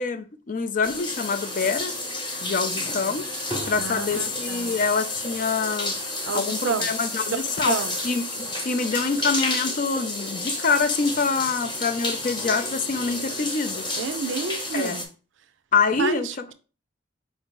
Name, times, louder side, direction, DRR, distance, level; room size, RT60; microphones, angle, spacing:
voice 1, 0.0-1.9 2.4-3.3 3.7-5.9 6.3-7.8 8.0-13.9 14.7-15.0 15.7-16.5, left 5 dB, 40° left, 0.4 m, -25 dB
sound 1, 0.8-15.1, left 2 dB, 25° left, 0.9 m, -30 dB
voice 2, 3.8-4.7 6.3-6.9 7.3-7.9 14.0-15.0 16.0-16.5, right 5 dB, 65° right, 0.4 m, -30 dB
4.8 x 2.6 x 3.7 m
head